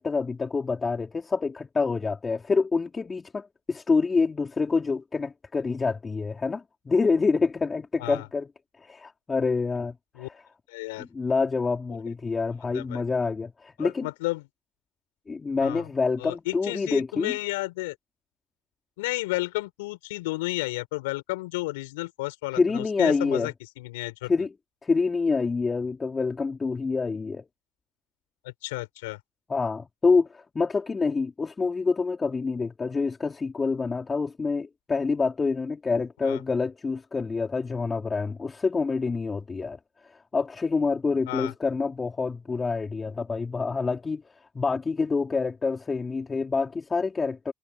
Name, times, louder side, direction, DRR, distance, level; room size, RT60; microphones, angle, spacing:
voice 1, 0.0-8.5 8.8-10.3 11.0-14.1 15.3-17.4 22.6-23.5 24.3-24.5 24.8-27.4 29.5-39.8 40.3-44.2 44.5-47.5, left 4 dB, 30° left, 4.3 m, -27 dB
voice 2, 10.7-11.1 12.7-13.0 13.8-14.5 15.6-15.9 16.2-17.9 19.0-24.3 28.4-29.2 36.2-36.4 41.3-41.5, left 21 dB, 85° left, 5.9 m, -32 dB
hypercardioid pair, 60°, 0 cm